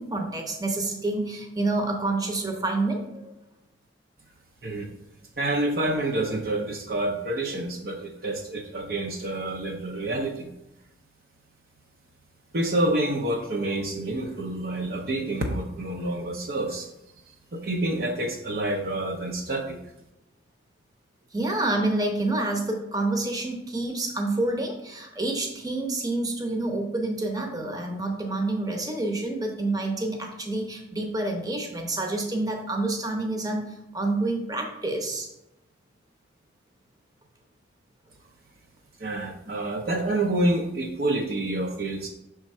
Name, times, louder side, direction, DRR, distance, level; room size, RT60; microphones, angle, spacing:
voice 1, 0.0-3.3 21.3-35.3, right 2 dB, 20° right, 2 dB, 0.8 m, -28 dB
voice 2, 5.4-10.5 12.5-16.9 17.5-19.8 39.0-42.1, right 1 dB, 50° right, 1 dB, 0.6 m, -28 dB
6.2 x 3.6 x 4.3 m, 0.90 s
head